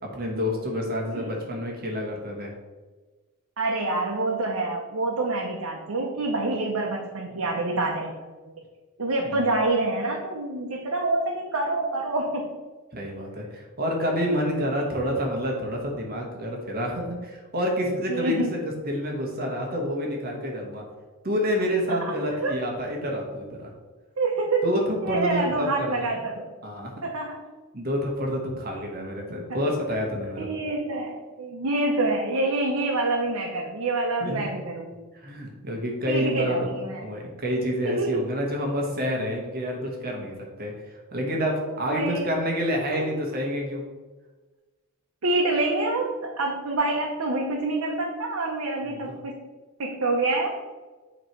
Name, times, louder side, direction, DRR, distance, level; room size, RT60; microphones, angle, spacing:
voice 1, 0.0-2.5 9.3-9.5 12.9-20.8 21.2-23.7 24.6-25.9 26.6-26.9 27.7-30.6 34.2-34.5 35.1-43.9 48.9-49.2, equal, 45° right, 0 dB, 1.2 m, -28 dB
voice 2, 3.6-8.1 9.0-12.5 18.1-18.5 21.9-22.1 22.4-22.6 24.2-24.8 25.0-26.5 27.0-27.4 30.4-35.0 36.1-37.0 37.8-38.2 41.7-42.3 42.9-43.1 45.2-49.4 49.8-50.5, right 2 dB, 80° right, -1 dB, 0.8 m, -27 dB
8.5 x 3.1 x 4.5 m, 1.3 s
head